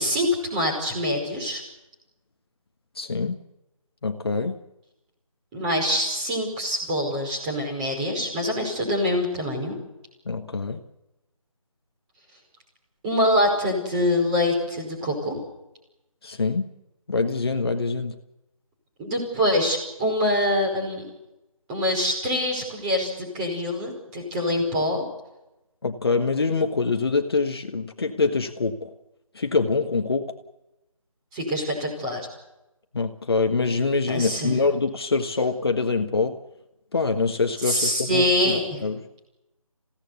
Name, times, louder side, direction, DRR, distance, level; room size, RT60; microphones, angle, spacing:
voice 1, 0.0-1.6 5.5-9.7 13.0-15.4 19.0-21.0 21.7-25.0 31.3-32.2 34.1-34.6 37.6-38.8, left 1 dB, 15° right, 1 dB, 5.2 m, -25 dB
voice 2, 2.9-3.4 4.0-4.5 10.2-10.8 16.2-16.7 17.1-18.2 25.8-28.9 29.3-30.3 32.9-36.4 36.9-39.0, left 4 dB, 45° left, 5 dB, 1.5 m, -25 dB
28.0 x 17.0 x 8.3 m, 0.95 s
figure-of-eight pair, 165°, 18 cm